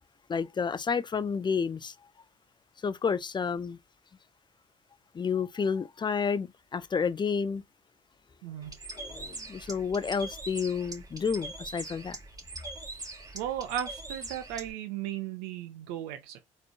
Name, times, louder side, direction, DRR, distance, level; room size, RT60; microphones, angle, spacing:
voice 1, 0.3-1.9 2.8-3.8 5.1-7.6 8.9-12.2, left 6 dB, 30° left, 0.5 m, -30 dB
voice 2, 8.4-8.8 13.3-16.4, right 11 dB, 75° right, 0.6 m, -36 dB
Bird, 8.6-14.7, right 2 dB, 25° right, 2.2 m, -42 dB
4.2 x 3.1 x 2.8 m
hypercardioid pair, 50°, 16 cm